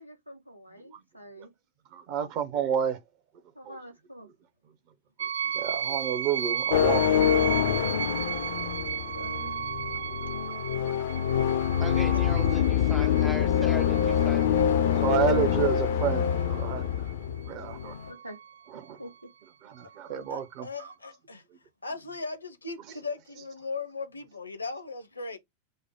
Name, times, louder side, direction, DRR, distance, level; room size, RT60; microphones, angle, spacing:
voice 1, 0.0-1.5 3.5-4.3 8.3-8.4 9.2-9.5 12.2-12.3 18.1-18.4 19.0-19.1 20.1-20.2, equal, 90° right, 1.3 m, -45 dB
voice 2, 1.9-3.0 3.7-3.8 5.2-5.3 5.5-7.6 7.9-8.0 10.8-10.9 11.7-11.8 15.0-17.1 17.5-17.9 18.7-19.0 19.6-20.9, right 9 dB, 45° right, 0.8 m, -30 dB
sound 1, 5.2-17.1 17.7-18.5, right 8 dB, 65° right, 0.3 m, -35 dB
sound 2, 6.7-18.1, left 9 dB, 60° left, 0.5 m, -25 dB
voice 3, 11.8-14.6, equal, ahead, 0.5 m, -39 dB
voice 4, 20.3-21.4 21.8-25.4, left 4 dB, 80° left, 0.9 m, -38 dB
5.4 x 2.1 x 3.5 m
figure-of-eight pair, 90°, 0 cm